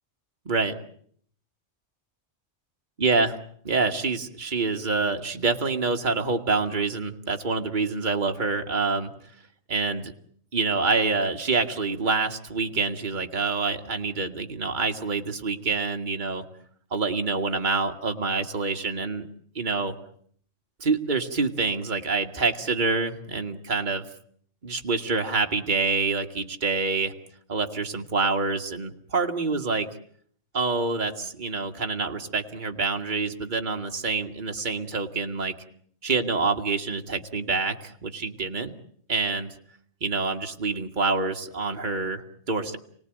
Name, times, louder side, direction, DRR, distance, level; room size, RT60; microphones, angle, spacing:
voice 1, 0.5-0.8 3.0-3.3 3.6-9.1 9.7-10.1 10.5-16.5 16.9-19.3 19.6-20.0 20.8-24.1 24.6-27.1 27.5-29.9 30.5-35.5 36.0-38.7 39.1-39.6 40.0-42.8, right 4 dB, 40° right, 4 dB, 2.0 m, -26 dB
29.5 x 19.0 x 9.2 m, 0.62 s
omnidirectional pair, 1.3 m